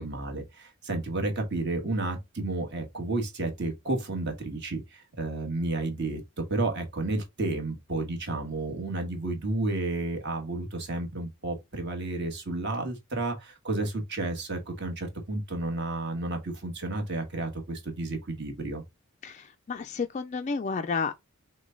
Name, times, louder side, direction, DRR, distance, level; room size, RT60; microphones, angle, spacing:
voice 1, 0.0-18.8, right 2 dB, 55° right, 1.4 m, -31 dB
voice 2, 19.2-21.1, left 4 dB, 35° left, 0.3 m, -31 dB
6.2 x 2.2 x 3.8 m
head